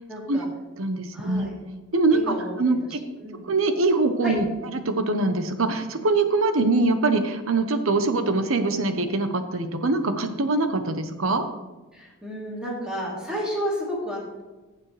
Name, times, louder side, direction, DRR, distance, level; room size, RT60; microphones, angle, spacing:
voice 1, 0.1-0.5 1.1-1.5 2.1-2.5 3.2-3.4 4.2-4.4 11.9-14.4, equal, 5° right, -5 dB, 3.1 m, -31 dB
voice 2, 0.8-1.5 1.9-3.0 3.5-11.5, right 3 dB, 75° right, 8 dB, 1.0 m, -23 dB
15.5 x 7.4 x 3.3 m, 1.2 s
head